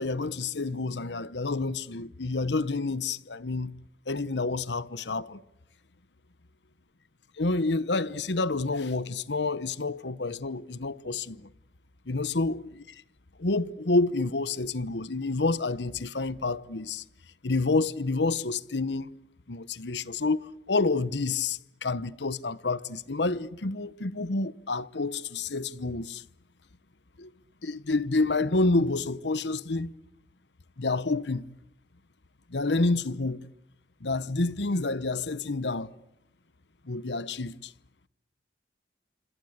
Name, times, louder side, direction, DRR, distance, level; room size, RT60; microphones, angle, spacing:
voice 1, 0.0-3.7 4.1-5.4 7.4-11.5 12.1-12.6 13.4-17.0 17.4-19.1 19.5-20.4 20.7-26.2 27.2-27.3 27.6-29.9 30.8-31.5 32.5-33.4 34.0-35.9 36.9-37.7, left 3 dB, 75° left, 1.1 m, -28 dB
27.0 x 27.0 x 8.1 m
head